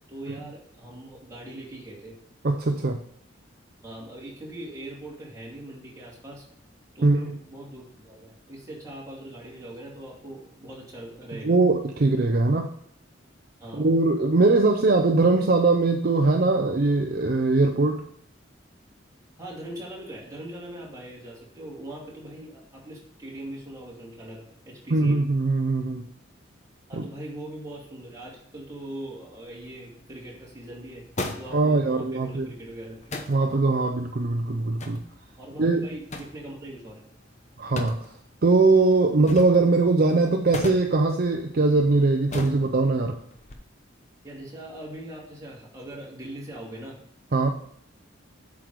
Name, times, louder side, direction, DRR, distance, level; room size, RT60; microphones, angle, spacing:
voice 1, 0.1-2.1 3.8-6.4 6.9-11.6 13.6-13.9 19.4-25.2 26.9-31.0 31.3-33.0 33.2-33.5 35.4-37.0 44.2-46.9, right 1 dB, 15° right, -4 dB, 2.4 m, -41 dB
voice 2, 2.4-3.0 7.0-7.3 11.4-12.7 13.7-18.0 24.9-26.0 26.9-27.0 31.5-32.5 33.3-35.0 35.6-35.9 37.6-38.0 38.4-43.2 47.3-47.5, right 3 dB, 50° right, 4 dB, 0.5 m, -21 dB
sound 1, 29.4-43.5, left 2 dB, 35° left, 0.9 m, -41 dB
7.6 x 4.9 x 4.7 m, 0.69 s
head